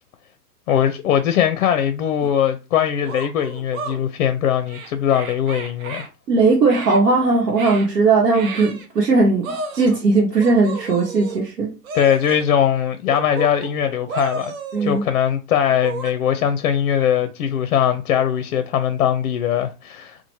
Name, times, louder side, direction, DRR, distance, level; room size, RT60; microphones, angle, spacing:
voice 1, 0.7-6.1 11.9-14.5 14.8-20.3, left 9 dB, 55° left, 0.5 m, -20 dB
sound 1, 2.2-2.3 3.0-4.0 4.7-6.1 6.7-7.0 7.6-7.9 8.3-8.9 9.4-10.0 10.4-11.4 11.8-12.5 13.1-13.7 14.1-15.1 15.7-16.1, right 4 dB, 60° right, 0.8 m, -32 dB
voice 2, 6.3-11.8 14.7-15.0, right 3 dB, 85° right, 1.0 m, -18 dB
3.0 x 2.1 x 2.9 m
hypercardioid pair, 115°, 48 cm